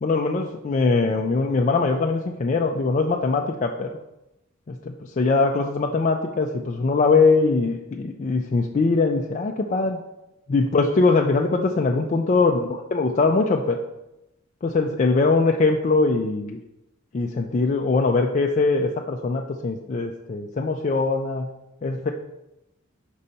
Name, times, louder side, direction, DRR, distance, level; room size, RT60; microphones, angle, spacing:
voice 1, 0.0-3.9 4.7-10.0 10.5-13.8 14.6-16.6 17.1-21.5 21.8-22.1, left 3 dB, 35° left, 1 dB, 0.4 m, -22 dB
5.4 x 4.1 x 5.1 m, 0.92 s
head